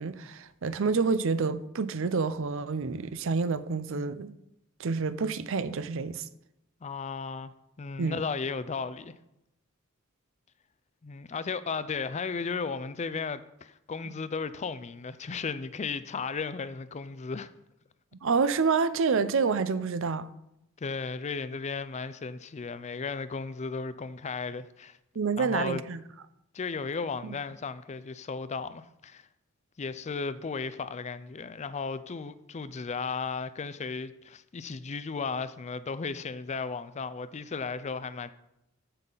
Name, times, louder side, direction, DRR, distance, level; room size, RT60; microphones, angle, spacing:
voice 1, 0.0-4.4 4.8-6.3 8.0-8.2 18.2-20.3 25.2-26.0 27.2-27.4, right 4 dB, 65° right, 0.6 m, -28 dB
voice 2, 6.8-7.5 7.8-9.2 11.0-17.5 20.8-25.0 25.4-25.8 26.5-29.3 29.8-38.3, left 5 dB, 35° left, 0.4 m, -35 dB
14.5 x 5.7 x 3.9 m
head